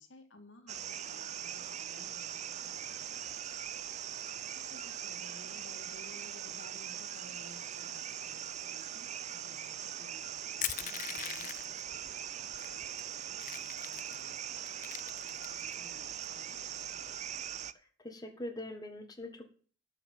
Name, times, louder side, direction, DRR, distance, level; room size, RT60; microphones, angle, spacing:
voice 1, 0.0-3.3 4.5-17.3, left 2 dB, 80° left, 5 dB, 2.2 m, -58 dB
sound 1, 0.7-17.7, right 9 dB, 35° right, 0.5 m, -41 dB
Crushing, 10.6-11.8 12.6-12.7 13.0-14.2 14.6-15.7, left 11 dB, 40° left, 0.6 m, -39 dB
voice 2, 18.0-19.5, left 1 dB, 20° left, 4 dB, 1.6 m, -42 dB
12.0 x 5.8 x 7.6 m, 0.42 s
head